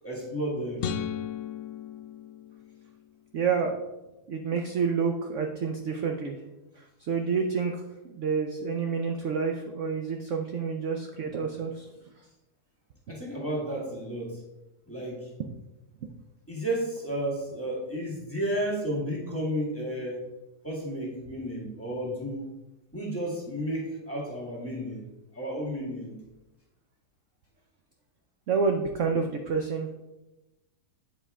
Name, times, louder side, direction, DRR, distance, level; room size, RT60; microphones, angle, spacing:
voice 1, 0.0-0.9 13.1-14.4 14.9-15.3 16.5-20.3 20.6-22.5 22.9-25.1 25.3-26.1, right 1 dB, 10° left, -4 dB, 1.8 m, -32 dB
sound 1, 0.8-3.2, left 8 dB, 70° left, 0.7 m, -36 dB
voice 2, 3.3-3.8 4.3-6.4 6.8-7.8 8.1-11.9 15.4-15.5 28.5-29.9, right 5 dB, 60° right, 4 dB, 0.8 m, -28 dB
8.8 x 5.2 x 3.6 m, 1.0 s
omnidirectional pair, 1.8 m